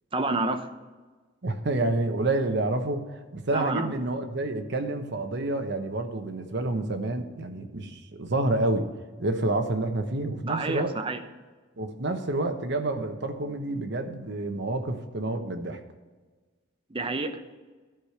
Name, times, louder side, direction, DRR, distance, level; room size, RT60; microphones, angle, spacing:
voice 1, 0.1-0.7 3.5-4.0 10.5-11.2 16.9-17.4, right 2 dB, 30° right, 7 dB, 0.7 m, -29 dB
voice 2, 1.4-8.9 9.2-10.9 11.8-15.8, right 2 dB, 65° right, 6 dB, 1.0 m, -28 dB
12.5 x 5.0 x 5.8 m, 1.3 s
head